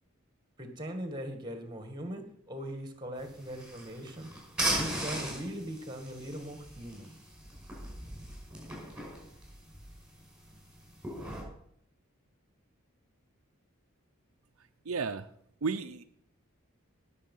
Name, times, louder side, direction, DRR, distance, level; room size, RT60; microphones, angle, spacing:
voice 1, 0.6-4.3 4.6-7.1, equal, 20° right, 6 dB, 1.9 m, -40 dB
sound 1, 3.2-11.4, right 1 dB, 5° right, 5.3 m, -38 dB
voice 2, 14.9-15.3 15.6-16.0, right 4 dB, 75° right, 8 dB, 0.7 m, -32 dB
18.5 x 7.0 x 5.6 m, 0.69 s
head